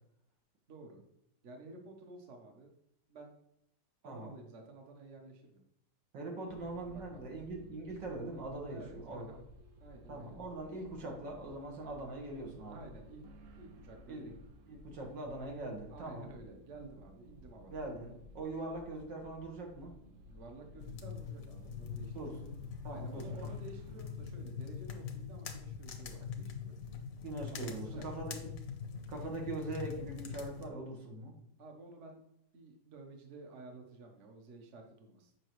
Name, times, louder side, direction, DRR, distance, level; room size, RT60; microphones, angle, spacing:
voice 1, 0.7-1.0 1.4-2.7 3.1-3.3 4.0-5.6 6.5-7.2 8.7-9.4 9.8-10.4 12.6-13.2 13.5-14.3 15.9-18.2 20.2-22.4 22.9-27.0 27.5-28.3 31.6-32.2 32.5-35.3, right 2 dB, 45° right, 3 dB, 1.2 m, -52 dB
voice 2, 6.1-9.3 10.1-12.9 14.1-14.3 14.7-16.3 17.7-19.9 22.1-22.6 22.8-23.5 27.2-28.6 29.1-31.3, right 2 dB, 80° right, 0 dB, 2.1 m, -42 dB
sound 1, 6.5-24.2, equal, 65° right, 0.8 m, -57 dB
sound 2, 20.8-30.7, left 6 dB, 60° left, 1.1 m, -43 dB
7.9 x 5.5 x 3.1 m, 0.74 s
omnidirectional pair, 1.9 m